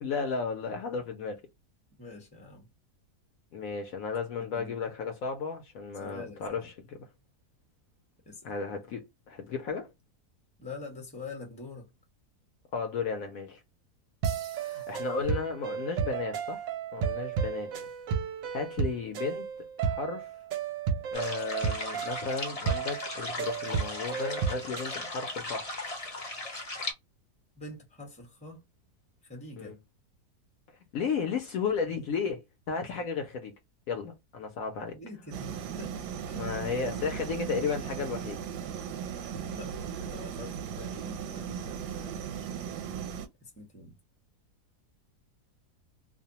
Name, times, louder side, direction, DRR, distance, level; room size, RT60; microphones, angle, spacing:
voice 1, 0.0-1.4 3.5-7.0 8.4-9.9 12.7-13.6 14.6-16.7 16.9-17.7 18.5-19.5 19.8-20.3 21.1-25.7 29.6-29.7 30.9-33.5 33.9-35.0 36.3-38.4, left 5 dB, 65° left, 1.0 m, -34 dB
voice 2, 2.0-2.7 4.4-4.9 6.0-6.7 8.3-8.5 10.6-11.9 27.6-28.6 29.2-29.7 34.9-36.5 39.4-42.3 43.4-43.9, left 3 dB, 5° left, 0.8 m, -45 dB
sound 1, 14.2-24.9, right 6 dB, 70° right, 0.8 m, -33 dB
sound 2, 21.1-26.9, left 2 dB, 35° left, 0.5 m, -37 dB
sound 3, 35.3-43.3, right 8 dB, 90° right, 1.2 m, -37 dB
2.7 x 2.1 x 2.7 m
omnidirectional pair, 1.7 m